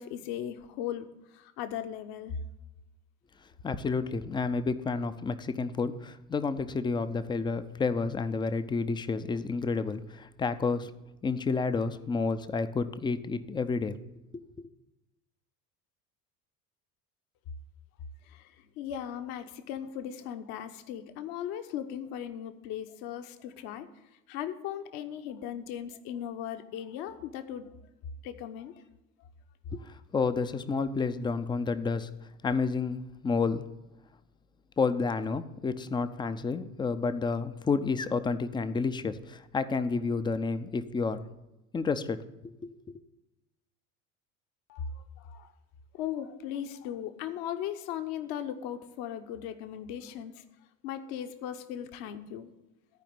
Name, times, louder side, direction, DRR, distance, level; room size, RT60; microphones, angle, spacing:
voice 1, 0.0-2.4 18.2-24.0 24.3-27.7 28.2-28.8 44.7-45.5 45.9-50.4 50.8-52.5, left 10 dB, 50° left, 9 dB, 1.0 m, -38 dB
voice 2, 3.6-10.9 11.2-14.0 14.3-14.4 29.7-32.1 32.4-33.7 34.8-41.3 41.7-43.0, left 4 dB, 10° left, 11 dB, 0.5 m, -30 dB
14.0 x 5.0 x 7.1 m, 0.98 s
figure-of-eight pair, 65°, 46 cm